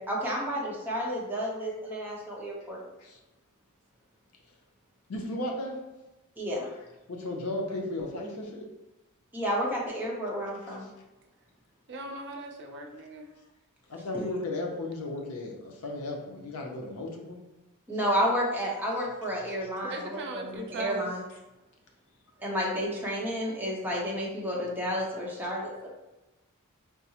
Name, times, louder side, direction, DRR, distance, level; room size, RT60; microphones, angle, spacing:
voice 1, 0.0-2.8 6.4-6.7 9.3-10.9 14.1-14.3 17.9-21.2 22.4-25.9, equal, 10° right, -4 dB, 0.8 m, -31 dB
voice 2, 5.1-5.8 7.1-8.7 13.9-17.4, left 2 dB, 70° left, 1 dB, 0.6 m, -35 dB
voice 3, 11.9-13.3 19.8-21.1, right 2 dB, 55° right, 2 dB, 0.5 m, -39 dB
4.7 x 2.0 x 2.8 m, 1.0 s
head